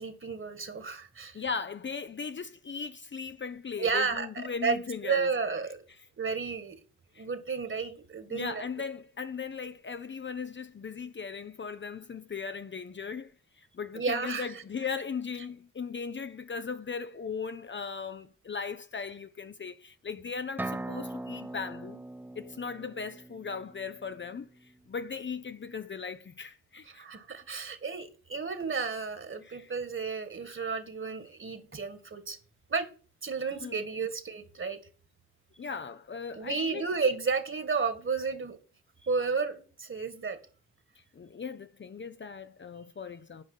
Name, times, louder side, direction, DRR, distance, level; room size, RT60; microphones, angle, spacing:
voice 1, 0.0-1.4 3.8-4.8 5.0-5.8 6.2-6.8 7.2-8.6 14.0-14.5 26.9-32.4 32.7-32.9 33.2-34.8 36.4-38.6 39.0-40.4, right 5 dB, 35° right, 1.9 m, -32 dB
voice 2, 1.3-5.3 7.1-7.3 8.3-22.0 22.4-27.0 29.4-29.7 33.6-33.8 35.6-36.9 41.1-43.4, left 5 dB, 35° left, 0.7 m, -38 dB
sound 1, 20.6-24.3, right 1 dB, 5° right, 0.5 m, -40 dB
9.5 x 5.1 x 7.3 m
cardioid pair, 70°, 33 cm